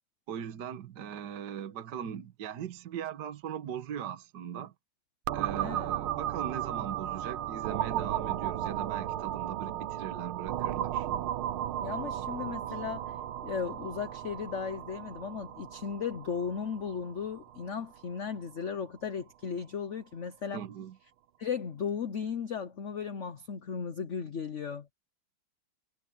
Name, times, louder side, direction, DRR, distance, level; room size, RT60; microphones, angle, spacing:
voice 1, 0.3-4.7 5.3-11.1 12.7-12.8 20.5-21.0, right 9 dB, 60° right, 1.6 m, -39 dB
sound 1, 5.3-18.8, right 12 dB, 85° right, 1.7 m, -35 dB
voice 2, 5.6-5.9 11.8-13.1 13.4-20.6 21.4-24.9, left 6 dB, 55° left, 0.8 m, -36 dB
omnidirectional pair, 2.3 m